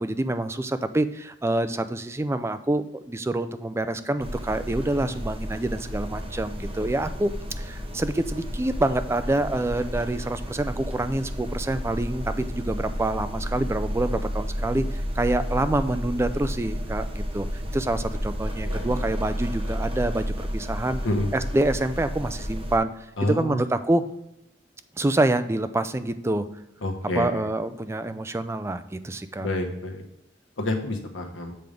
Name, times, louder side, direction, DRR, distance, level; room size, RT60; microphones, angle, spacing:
voice 1, 0.0-7.3 7.6-17.5 17.7-21.0 21.3-22.9 23.2-24.1 25.0-26.5 27.2-29.5, right 2 dB, 15° right, 10 dB, 0.4 m, -26 dB
sound 1, 4.2-22.8, equal, 30° right, 0.9 m, -32 dB
voice 2, 18.6-18.9 21.0-21.3 23.2-23.6 26.8-27.5 29.4-30.0 30.6-31.5, left 1 dB, 90° left, 4 dB, 1.1 m, -28 dB
7.8 x 3.6 x 5.1 m, 0.86 s
head